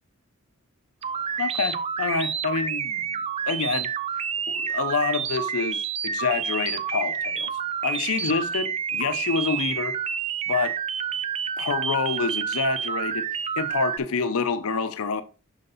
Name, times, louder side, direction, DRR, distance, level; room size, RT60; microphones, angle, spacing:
sound 1, 1.0-14.0, right 7 dB, 30° right, 0.3 m, -29 dB
voice 1, 1.4-3.0 3.5-3.9 4.5-7.5 7.8-10.0 10.5-10.8 11.6-13.3 13.6-15.2, left 4 dB, 80° left, 0.6 m, -27 dB
6.5 x 5.5 x 3.9 m
head